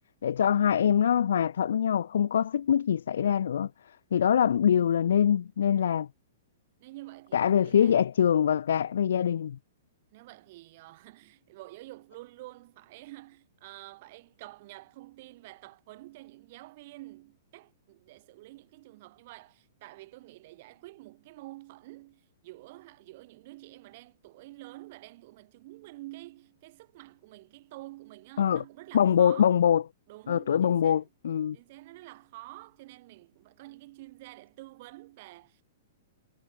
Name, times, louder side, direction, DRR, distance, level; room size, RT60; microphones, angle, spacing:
voice 1, 0.2-3.7 4.1-6.1 7.3-9.6 28.4-28.6 28.9-29.8 30.3-31.6, left 9 dB, 80° left, 0.4 m, -24 dB
voice 2, 6.8-8.0 10.1-29.6 30.1-31.1 31.5-35.6, right 19 dB, 50° right, 2.0 m, -48 dB
hypercardioid pair, 145°, 0 cm